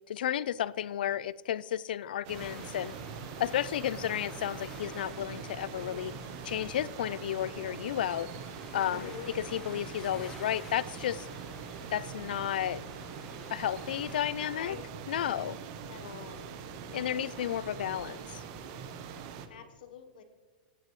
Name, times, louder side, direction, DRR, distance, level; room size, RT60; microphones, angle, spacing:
voice 1, 0.1-2.9 3.4-6.1 6.4-8.3 8.7-11.3 11.9-12.8 13.5-14.8 15.1-15.6 16.9-18.4, left 11 dB, 85° left, 20 dB, 0.4 m, -32 dB
sound 1, 2.2-19.5, right 6 dB, 35° right, 0.8 m, -43 dB
sound 2, 2.3-14.2, left 2 dB, 10° left, 1.3 m, -50 dB
voice 2, 5.7-6.2 8.7-9.8 14.4-14.8 15.8-16.4 16.8-17.6 19.5-20.2, left 6 dB, 70° left, 8 dB, 1.1 m, -47 dB
15.5 x 9.6 x 3.1 m, 1.4 s
supercardioid pair, 170°, 5 cm